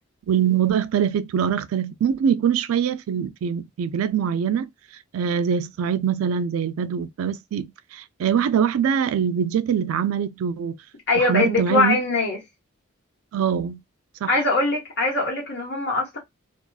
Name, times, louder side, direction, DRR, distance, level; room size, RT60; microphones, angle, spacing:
voice 1, 0.3-4.7 5.1-10.8 11.2-12.0 13.3-13.8 14.2-14.3, right 8 dB, 90° right, 0.3 m, -23 dB
voice 2, 11.1-12.4 14.3-16.2, left 2 dB, 55° left, 1.2 m, -22 dB
2.4 x 2.3 x 2.2 m
head